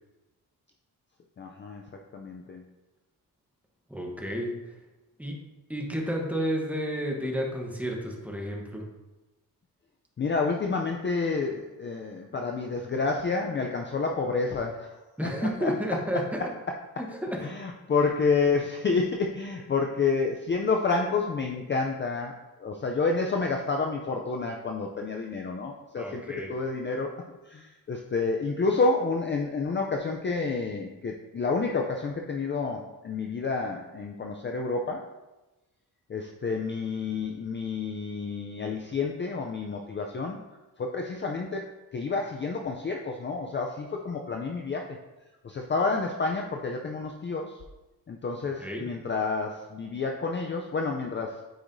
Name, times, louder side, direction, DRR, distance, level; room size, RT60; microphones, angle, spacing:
voice 1, 1.4-1.8 2.1-2.6 10.2-15.7 17.4-27.1 27.4-35.0 36.1-40.4 40.8-45.0 45.4-47.6 48.1-51.4, left 4 dB, 30° left, 2 dB, 0.4 m, -29 dB
voice 2, 3.9-4.5 5.2-5.3 5.7-8.9 15.2-16.4 17.0-17.4 25.9-26.5 48.6-48.9, equal, 5° right, -1 dB, 0.9 m, -31 dB
8.7 x 4.8 x 2.6 m, 1.1 s
wide cardioid pair, 155°, 37 cm